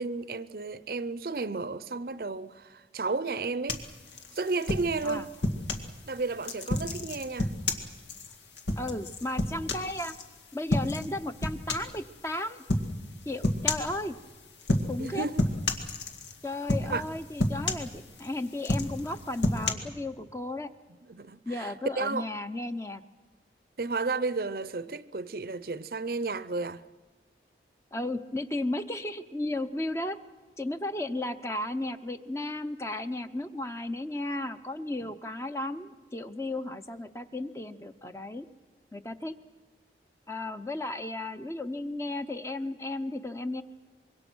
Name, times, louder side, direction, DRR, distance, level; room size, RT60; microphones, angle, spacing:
voice 1, 0.0-3.8 4.3-5.3 6.1-7.5 15.0-15.4 16.8-17.0 21.1-22.2 23.8-26.8, right 3 dB, 55° right, 0.6 m, -32 dB
sound 1, 3.7-5.9 6.4-10.2 10.7-11.1 11.4-12.0 12.7-12.9 13.4-13.9 14.6-15.1 15.4-16.4 16.7-17.1 17.4-18.3 18.6-19.7, left 2 dB, 85° left, 2.0 m, -29 dB
voice 2, 8.8-10.2 10.5-12.6 13.3-14.2 14.9-15.3 16.4-20.7 21.5-23.0 27.9-30.2 30.6-38.5 38.9-39.4 40.3-43.6, left 1 dB, 15° left, 0.7 m, -34 dB
25.5 x 22.5 x 6.2 m
head